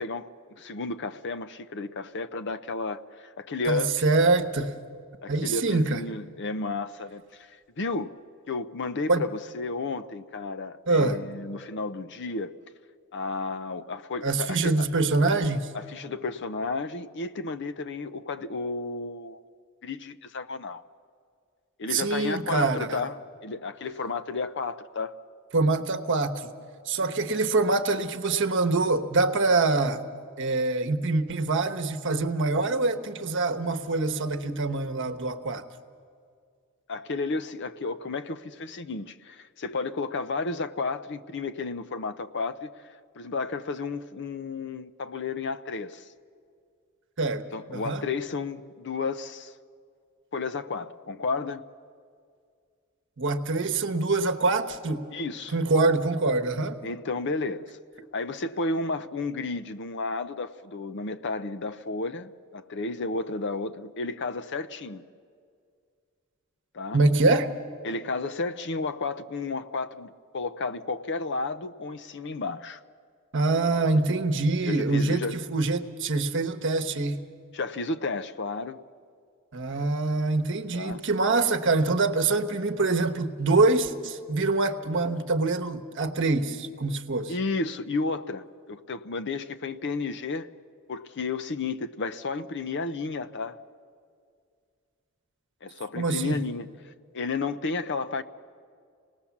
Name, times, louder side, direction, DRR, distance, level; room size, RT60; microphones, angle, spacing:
voice 1, 0.0-4.0 5.2-8.1 8.5-12.6 13.1-14.9 15.7-19.4 19.8-20.8 21.8-23.2 23.4-25.2 36.9-46.1 47.5-49.5 50.3-51.6 55.1-55.5 56.8-57.8 58.1-65.0 66.7-67.0 67.8-72.8 74.6-75.4 77.5-78.8 80.7-81.0 87.3-90.5 90.9-93.6 95.6-98.2, left 3 dB, 55° left, 0.6 m, -32 dB
voice 2, 3.7-4.7 5.3-6.0 9.1-9.2 10.9-11.2 14.2-15.7 21.9-23.0 25.5-26.5 26.9-30.0 30.4-35.6 47.2-47.4 47.7-48.0 53.2-55.1 55.5-56.8 66.9-67.5 73.3-77.3 79.5-87.3 96.0-96.4, right 3 dB, 55° right, 1.1 m, -25 dB
26.5 x 19.0 x 7.2 m
head